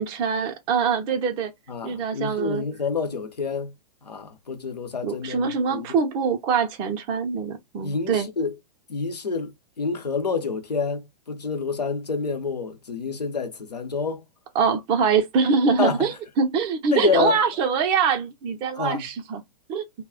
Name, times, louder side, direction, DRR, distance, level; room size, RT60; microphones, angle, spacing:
voice 1, 0.0-1.5 1.8-2.6 5.0-8.3 14.5-19.4 19.7-19.8, right 5 dB, 25° right, 0.5 m, -24 dB
voice 2, 1.7-3.7 4.0-5.9 7.8-8.5 8.9-14.2 15.8-16.1 16.9-17.4 18.8-19.1, left 5 dB, 80° left, 0.7 m, -28 dB
2.3 x 2.1 x 3.6 m
figure-of-eight pair, 110°, 20 cm